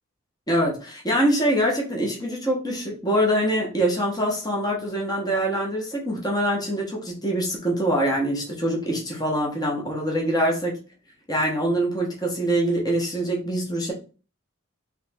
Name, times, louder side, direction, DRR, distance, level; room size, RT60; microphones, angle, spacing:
voice 1, 0.5-10.8 11.3-13.9, right 1 dB, 20° left, -2 dB, 0.9 m, -24 dB
3.2 x 3.0 x 3.4 m, 0.35 s
head